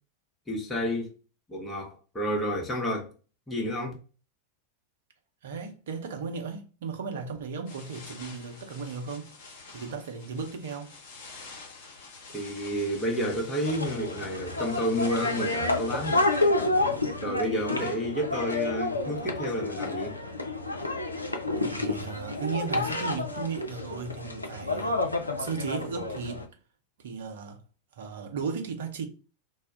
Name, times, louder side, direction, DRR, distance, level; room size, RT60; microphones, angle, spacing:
voice 1, 0.5-1.1 1.5-3.1 3.5-3.9 12.3-16.2 17.2-20.2, equal, 10° left, 0.8 m, -30 dB
voice 2, 5.4-9.4 9.7-10.9 21.6-25.0 25.4-26.5 27.0-27.6 28.0-29.1, right 5 dB, 60° right, 0.6 m, -35 dB
sound 1, 7.7-16.5, left 4 dB, 50° left, 0.8 m, -47 dB
sound 2, 13.7-26.5, left 2 dB, 85° left, 0.4 m, -30 dB
2.2 x 2.0 x 3.7 m
figure-of-eight pair, 90°, 0 cm